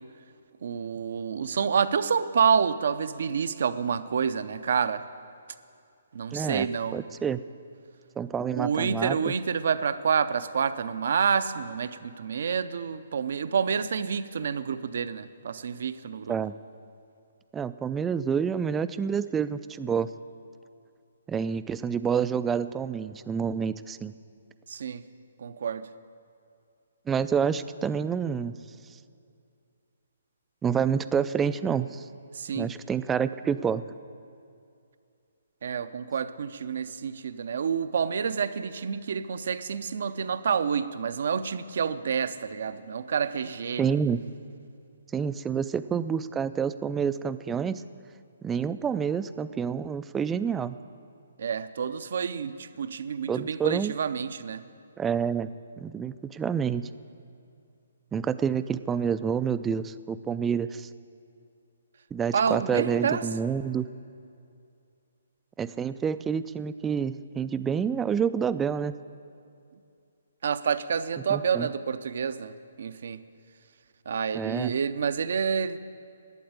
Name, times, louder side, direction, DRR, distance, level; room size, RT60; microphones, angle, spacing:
voice 1, 0.6-5.0 6.1-7.0 8.5-16.3 24.7-25.0 25.4-25.9 32.4-32.7 35.6-43.9 51.4-54.6 62.3-63.2 70.4-72.5 72.8-73.2 74.1-75.8, right 6 dB, 60° right, 12 dB, 0.5 m, -28 dB
voice 2, 6.3-6.7 6.9-7.4 8.2-9.3 16.3-16.5 17.5-20.1 21.3-24.1 27.1-28.5 30.6-32.0 32.5-33.8 43.8-44.2 45.1-47.8 48.4-50.8 53.3-53.9 55.0-55.5 55.8-56.9 58.1-60.9 62.1-63.9 65.6-69.0 71.3-71.7 74.3-74.7, right 7 dB, 10° right, 13 dB, 0.3 m, -28 dB
12.0 x 8.6 x 8.7 m, 2.5 s
hypercardioid pair, 140°, 0 cm